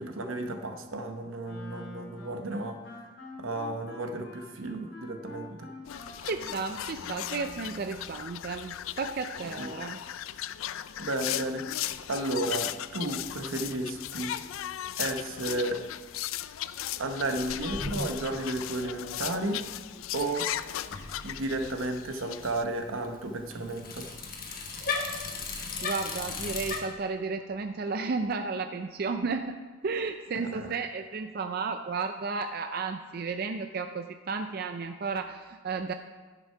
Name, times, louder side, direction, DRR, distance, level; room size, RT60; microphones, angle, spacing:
voice 1, 0.0-2.8 3.4-5.7 9.4-9.9 11.0-14.3 15.0-15.8 17.0-19.6 20.1-20.5 21.2-24.1 30.3-30.7, right 2 dB, 85° right, 6 dB, 0.9 m, -33 dB
Wind instrument woodwind instrument, 1.4-8.0, left 2 dB, 65° left, 2.6 m, -47 dB
sound 1, 5.8-22.6, left 12 dB, 85° left, 0.4 m, -37 dB
voice 2, 6.2-10.0 25.8-29.6 29.8-35.9, right 4 dB, 50° right, 7 dB, 0.4 m, -33 dB
Bicycle, 17.4-26.8, left 4 dB, 45° left, 1.3 m, -38 dB
11.0 x 6.1 x 5.6 m, 1.4 s
head